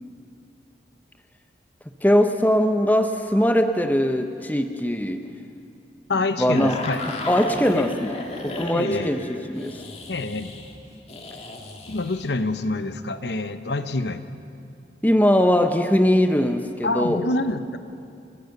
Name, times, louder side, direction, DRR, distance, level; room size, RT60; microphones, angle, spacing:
voice 1, 2.0-5.2 6.4-6.8 7.3-9.2 9.5-9.8 15.0-17.2, equal, 10° left, 7 dB, 0.9 m, -21 dB
voice 2, 6.1-7.0 7.7-7.9 8.7-9.1 10.1-10.5 11.9-14.2 16.8-17.8, left 2 dB, 75° left, 10 dB, 1.0 m, -26 dB
sound 1, 6.5-12.3, left 2 dB, 35° left, 2.0 m, -34 dB
29.5 x 15.0 x 6.7 m, 2.4 s
head